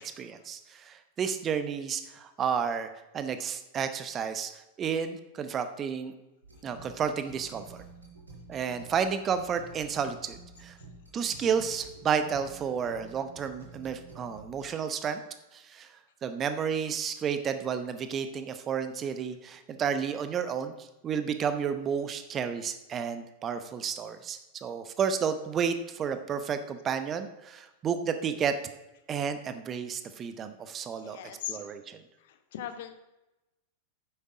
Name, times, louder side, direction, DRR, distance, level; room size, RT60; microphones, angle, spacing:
voice 1, 0.0-2.9 3.1-4.5 4.8-6.1 6.6-7.8 8.5-10.7 11.1-15.2 15.5-15.9 16.2-28.5 29.1-31.2 31.5-32.0, right 7 dB, 25° right, 9 dB, 0.8 m, -31 dB
sound 1, 6.4-14.6, right 3 dB, 75° right, 4.2 m, -50 dB
voice 2, 31.0-31.7 32.3-32.9, left 10 dB, 55° left, 8 dB, 1.0 m, -39 dB
9.1 x 7.6 x 4.9 m, 0.98 s
figure-of-eight pair, 90°, 0 cm